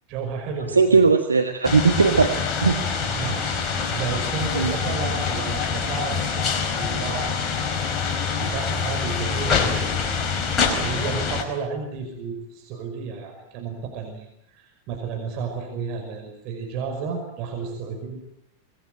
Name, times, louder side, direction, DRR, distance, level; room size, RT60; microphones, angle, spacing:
voice 1, 0.1-1.1 3.1-3.5 3.9-7.4 8.4-18.2, right 5 dB, 40° right, 3 dB, 5.6 m, -32 dB
voice 2, 0.7-2.8 4.5-4.7, right 4 dB, 75° right, 5 dB, 1.7 m, -19 dB
sound 1, 1.6-11.4, left 5 dB, 25° left, 5.0 m, -25 dB
25.0 x 21.0 x 8.9 m, 0.78 s
figure-of-eight pair, 90°, 0 cm